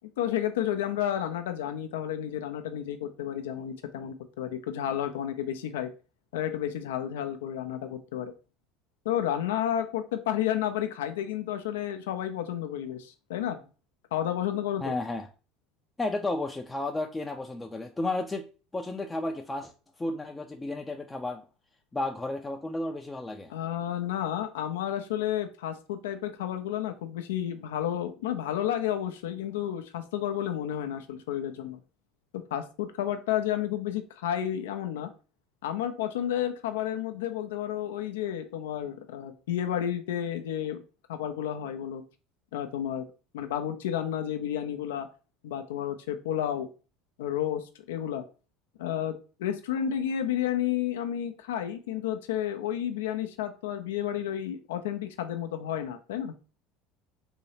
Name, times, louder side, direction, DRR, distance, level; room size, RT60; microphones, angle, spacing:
voice 1, 0.0-5.9 6.3-8.3 9.1-13.7 14.1-14.9 23.5-31.8 32.5-35.1 35.6-40.8 41.1-42.0 42.5-43.1 43.3-45.1 45.4-46.7 47.2-48.2 48.8-49.1 49.4-56.3, left 10 dB, 80° left, 7 dB, 0.4 m, -31 dB
voice 2, 14.8-15.3 16.0-18.5 18.7-21.4 21.9-23.5, left 2 dB, 15° left, 3 dB, 0.4 m, -33 dB
3.1 x 2.7 x 2.8 m, 0.34 s
hypercardioid pair, 75°, 0 cm